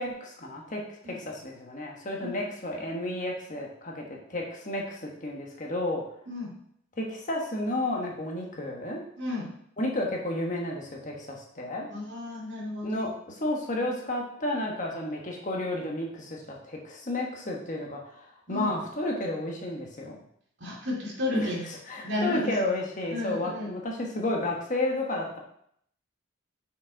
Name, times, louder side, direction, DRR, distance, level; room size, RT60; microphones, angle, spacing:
voice 1, 0.0-6.0 7.0-9.0 9.8-11.9 12.8-20.2 21.3-21.5 21.9-25.4, left 1 dB, 35° left, 0 dB, 1.2 m, -32 dB
voice 2, 9.2-9.5 11.9-13.1 18.5-18.7 20.6-21.6 22.0-22.5 23.1-23.7, left 2 dB, 55° right, -5 dB, 2.7 m, -33 dB
6.3 x 5.3 x 4.5 m, 0.70 s
head